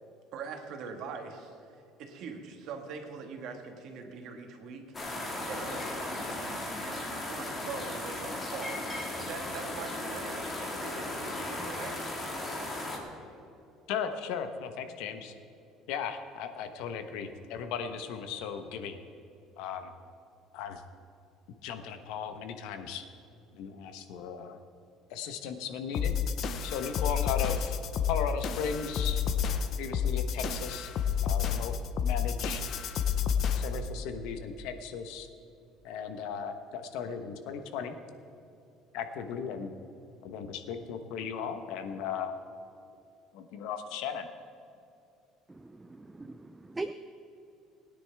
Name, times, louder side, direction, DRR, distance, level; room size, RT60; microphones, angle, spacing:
voice 1, 0.3-4.8 5.5-12.1, right 5 dB, 60° right, 4 dB, 1.6 m, -43 dB
sound 1, 4.9-13.0, left 1 dB, 20° left, 1.9 m, -36 dB
voice 2, 13.9-15.3 15.9-19.0 19.6-19.9 20.5-20.8 21.6-23.0 23.5-24.6 25.1-26.2 26.6-27.8 28.1-29.2 29.8-30.9 31.2-31.7 32.0-32.6 33.5-35.3 35.8-38.0 38.9-39.7 40.2-42.3 43.3-44.3, left 7 dB, 75° left, 8 dB, 1.0 m, -36 dB
sound 2, 25.9-33.9, left 7 dB, 45° left, 0.6 m, -30 dB
voice 3, 45.5-46.9, right 2 dB, 10° right, 9 dB, 0.3 m, -40 dB
20.5 x 9.8 x 3.5 m, 2.7 s
cardioid pair, 150°, 0 cm